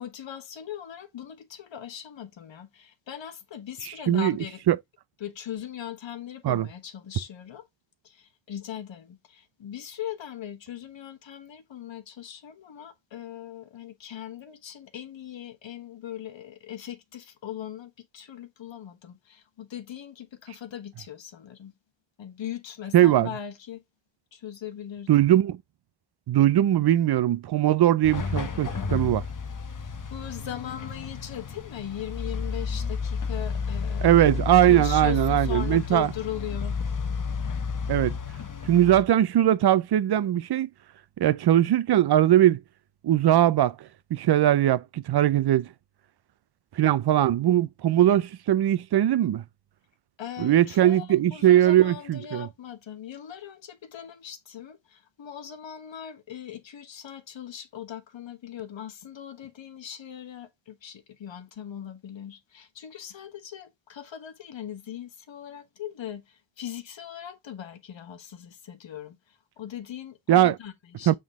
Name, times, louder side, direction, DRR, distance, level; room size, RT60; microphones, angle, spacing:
voice 1, 0.0-4.6 5.2-7.7 8.0-21.7 22.2-23.8 24.3-25.3 29.8-34.3 34.6-36.8 50.2-71.2, left 10 dB, 70° left, 1.3 m, -40 dB
voice 2, 4.1-4.4 4.7-4.8 6.4-6.7 22.9-23.3 25.1-25.6 26.3-29.2 34.0-36.1 37.9-38.1 38.6-40.7 41.2-42.6 43.0-43.8 44.1-45.7 46.8-49.4 50.4-52.5 70.3-70.6 71.1-71.2, right 12 dB, 55° right, 0.6 m, -20 dB
sound 1, 28.0-39.0, left 5 dB, 40° left, 1.1 m, -31 dB
7.3 x 3.9 x 3.6 m
wide cardioid pair, 105°, 47 cm